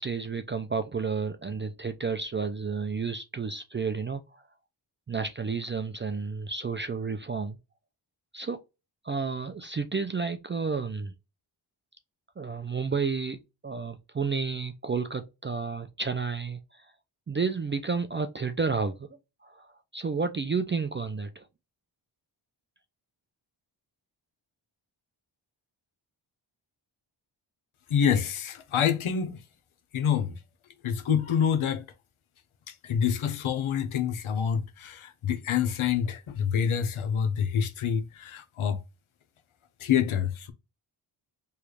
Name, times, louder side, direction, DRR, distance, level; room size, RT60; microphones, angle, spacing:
voice 1, 0.0-4.4 5.1-7.6 8.3-8.6 9.0-11.1 12.4-16.9 17.3-19.1 19.4-21.5, right 5 dB, 25° right, 0.3 m, -31 dB
voice 2, 27.9-29.4 29.9-30.4 30.8-31.8 32.7-38.8 39.8-40.5, left 8 dB, 80° left, 0.7 m, -27 dB
3.2 x 2.3 x 3.1 m
cardioid pair, 55°, 48 cm